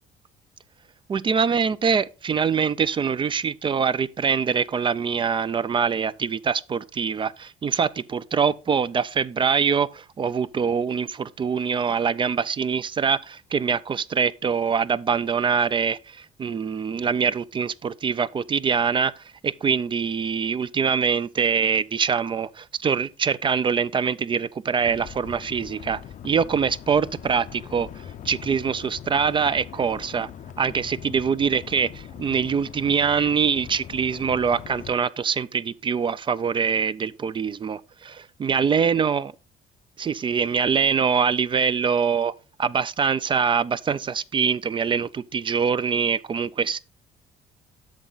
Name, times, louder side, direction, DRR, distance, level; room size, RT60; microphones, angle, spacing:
voice 1, 1.1-19.1 19.4-27.9 28.2-30.3 30.6-39.3 40.0-42.3 42.6-46.8, right 6 dB, 30° right, 0.4 m, -24 dB
sound 1, 24.8-34.9, left 9 dB, 45° left, 0.5 m, -41 dB
8.1 x 6.2 x 3.9 m
cardioid pair, 110°, 17 cm